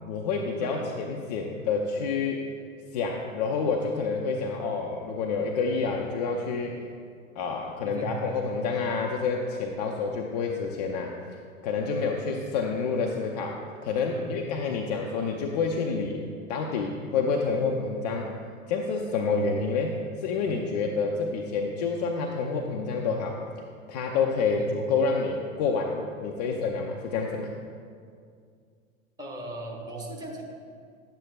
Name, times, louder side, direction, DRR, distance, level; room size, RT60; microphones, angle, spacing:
voice 1, 0.0-2.4 2.9-6.8 7.4-11.1 11.6-16.2 16.5-18.3 18.7-23.4 23.9-27.5, left 4 dB, 30° left, 1 dB, 0.5 m, -28 dB
voice 2, 7.8-8.2 14.1-14.3 24.5-24.7 29.2-30.4, right 2 dB, 10° right, -3 dB, 1.0 m, -38 dB
10.5 x 7.8 x 2.3 m, 2.2 s
figure-of-eight pair, 95°, 40 cm